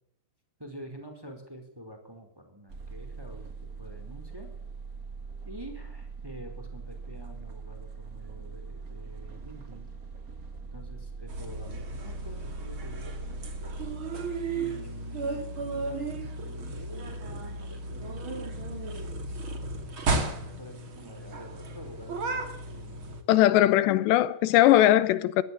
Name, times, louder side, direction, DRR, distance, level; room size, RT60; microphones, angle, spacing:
voice 1, 0.6-4.5 5.4-9.9 10.6-13.7 14.5-19.1 20.4-22.4 22.7-23.7, right 1 dB, 5° right, 4.3 m, -47 dB
sound 1, 2.7-13.9, right 5 dB, 55° right, 0.9 m, -42 dB
sound 2, 11.3-23.2, right 2 dB, 35° right, 2.8 m, -34 dB
voice 2, 23.3-25.4, left 14 dB, 90° left, 3.3 m, -20 dB
22.0 x 16.5 x 8.6 m
omnidirectional pair, 4.8 m